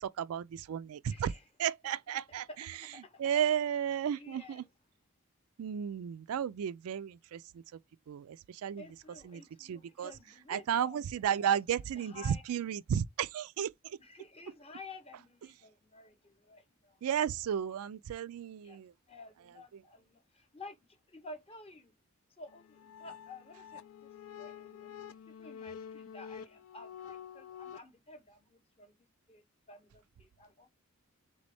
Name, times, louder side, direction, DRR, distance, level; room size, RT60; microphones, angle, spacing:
voice 1, 0.0-1.3 1.6-2.5 3.2-4.6 5.6-7.6 8.1-8.8 9.2-10.1 10.5-14.0 17.0-18.9, right 9 dB, 80° right, 0.3 m, -33 dB
voice 2, 1.1-1.4 2.5-3.4 3.8-4.7 8.8-11.0 11.4-12.4 14.0-17.0 18.6-21.9 22.4-24.9 25.3-29.0 29.3-30.7, left 3 dB, 25° left, 0.8 m, -52 dB
sound 1, 22.5-27.8, left 8 dB, 70° left, 0.4 m, -48 dB
4.0 x 3.3 x 3.3 m
head